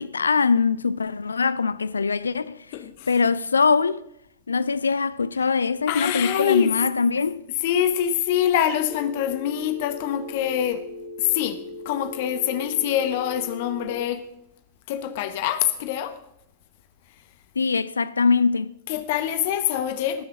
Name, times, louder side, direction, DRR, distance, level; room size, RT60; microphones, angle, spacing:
voice 1, 0.0-2.7 3.1-4.0 4.5-7.5 17.6-18.7, left 5 dB, 75° left, 0.4 m, -22 dB
voice 2, 2.7-3.1 5.9-6.8 7.6-10.9 11.2-14.3 14.9-16.2 18.9-20.2, left 10 dB, 50° left, 1.0 m, -25 dB
Telephone, 8.9-13.9, left 2 dB, 75° right, 5.5 m, -38 dB
19.0 x 6.7 x 6.1 m
figure-of-eight pair, 90°, 0 cm